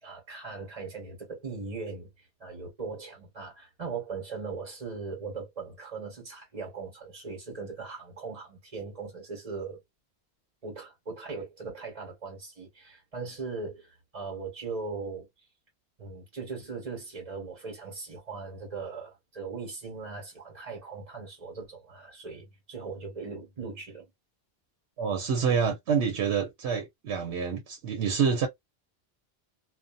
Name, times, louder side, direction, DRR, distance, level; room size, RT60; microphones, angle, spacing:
voice 1, 0.0-9.8 10.6-15.3 16.0-24.0, right 4 dB, 35° right, 1.2 m, -39 dB
voice 2, 25.0-28.5, right 6 dB, 85° right, 1.0 m, -27 dB
2.6 x 2.3 x 2.4 m
omnidirectional pair, 1.1 m